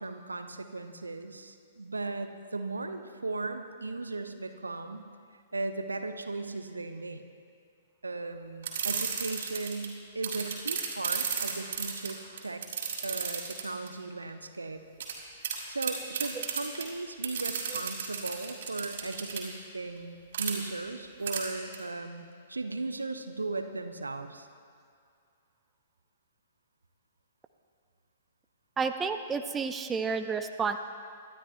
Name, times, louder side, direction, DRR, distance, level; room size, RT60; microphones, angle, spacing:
voice 1, 0.0-5.1 5.5-7.2 8.0-12.6 13.0-14.8 15.7-24.5, right 3 dB, 80° right, 8 dB, 0.8 m, -37 dB
sound 1, 8.6-9.9 10.2-13.9 15.0-15.1 15.4-15.6 15.8-16.8 17.2-19.4 20.3-20.5 21.3-21.4 21.7-21.8, right 7 dB, 55° right, 2.9 m, -33 dB
voice 2, 28.8-30.8, right 5 dB, 15° right, 8 dB, 0.5 m, -31 dB
24.0 x 12.5 x 2.5 m, 2.2 s
figure-of-eight pair, 115°, 0 cm